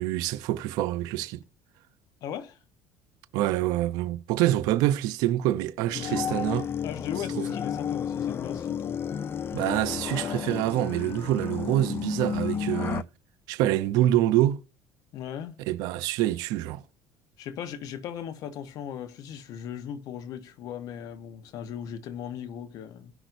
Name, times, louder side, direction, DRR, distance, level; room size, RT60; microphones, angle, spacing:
voice 1, 0.0-1.4 3.3-6.7 9.5-13.1 13.5-14.6 15.7-16.8, right 14 dB, 75° right, 0.7 m, -26 dB
voice 2, 2.2-2.6 5.9-6.2 6.8-9.1 15.1-15.6 17.4-23.1, left 9 dB, 65° left, 1.1 m, -38 dB
sound 1, 5.9-13.0, left 8 dB, 35° left, 0.4 m, -32 dB
17.0 x 6.0 x 2.6 m
supercardioid pair, 90°, 7 cm